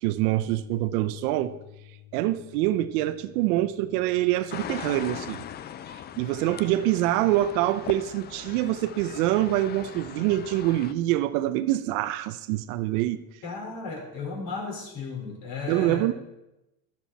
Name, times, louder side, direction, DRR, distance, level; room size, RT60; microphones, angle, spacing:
voice 1, 0.0-1.6 2.1-5.5 6.2-13.2 15.7-16.1, right 14 dB, 70° right, 12 dB, 0.8 m, -25 dB
sound 1, 0.5-6.8, left 12 dB, 75° left, 1.8 m, -52 dB
sound 2, 4.5-10.9, left 9 dB, 25° left, 0.4 m, -40 dB
voice 2, 13.4-16.1, left 4 dB, 50° left, 0 dB, 4.7 m, -35 dB
12.0 x 12.0 x 4.2 m, 0.93 s
supercardioid pair, 105°, 46 cm